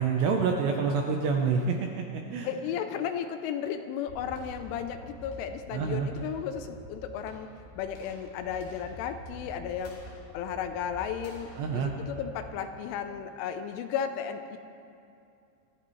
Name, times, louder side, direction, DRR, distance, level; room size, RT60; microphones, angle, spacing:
voice 1, 0.0-2.5 5.7-6.1 11.6-11.9, right 5 dB, 80° right, 1 dB, 2.6 m, -27 dB
voice 2, 2.4-7.5 7.8-10.0 10.3-14.6, left 8 dB, 80° left, 8 dB, 3.0 m, -34 dB
sound 1, 4.1-13.2, equal, 55° left, 3.9 m, -47 dB
24.0 x 14.0 x 3.2 m, 2.6 s
omnidirectional pair, 5.8 m